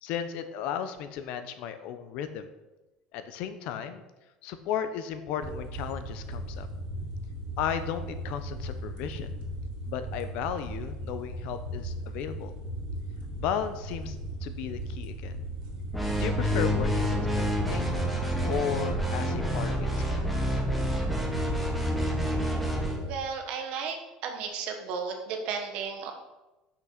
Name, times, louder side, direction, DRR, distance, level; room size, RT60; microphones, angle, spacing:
voice 1, 0.0-2.5 3.1-4.0 4.4-6.7 7.6-9.3 9.9-12.5 13.4-14.2 14.4-15.4 16.2-17.9 18.5-20.2, left 8 dB, 60° left, 10 dB, 0.7 m, -34 dB
sound 1, 5.4-23.1, right 1 dB, 75° right, 1.9 m, -37 dB
sound 2, 15.9-23.0, equal, ahead, 1.3 m, -28 dB
voice 2, 23.0-24.0 24.2-26.1, right 6 dB, 55° right, 3 dB, 1.5 m, -34 dB
6.1 x 6.0 x 5.9 m, 1.1 s
cardioid pair, 165°, 2 cm